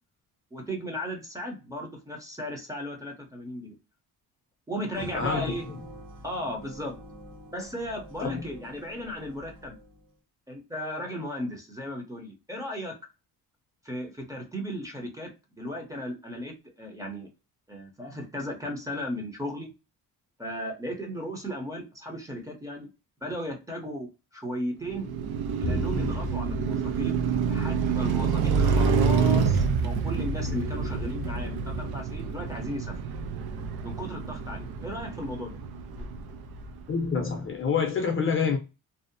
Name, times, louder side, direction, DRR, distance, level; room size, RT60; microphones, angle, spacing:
voice 1, 0.5-3.8 4.7-5.6 6.2-7.0 7.5-9.8 10.5-13.0 13.8-15.3 15.6-17.3 17.7-19.7 20.4-22.9 23.2-25.1 25.6-32.9 33.8-35.6 36.0-36.1, equal, 10° right, 0.6 m, -36 dB
sound 1, 4.9-10.1, right 1 dB, 60° right, 0.8 m, -45 dB
voice 2, 5.1-5.5 8.2-8.4 36.9-38.6, left 5 dB, 35° left, 0.5 m, -27 dB
Car passing by, 24.8-37.1, right 5 dB, 80° right, 0.5 m, -28 dB
Bowed string instrument, 25.6-31.8, left 3 dB, 80° left, 0.6 m, -38 dB
2.6 x 2.0 x 2.5 m
cardioid pair, 145°, 37 cm